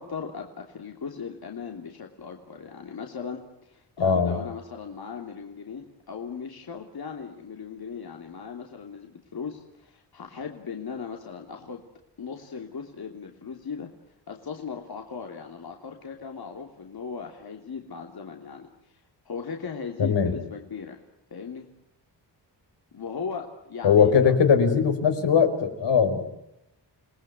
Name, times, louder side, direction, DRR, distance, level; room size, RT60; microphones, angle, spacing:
voice 1, 0.0-11.8 12.2-13.9 14.3-21.0 21.3-21.7 22.9-24.3, left 6 dB, 60° left, 3 dB, 3.2 m, -38 dB
voice 2, 4.0-4.4 20.0-20.3 23.8-26.2, left 6 dB, 80° left, 6 dB, 5.0 m, -20 dB
29.5 x 19.5 x 9.6 m, 0.86 s
cardioid pair, 95°, 43 cm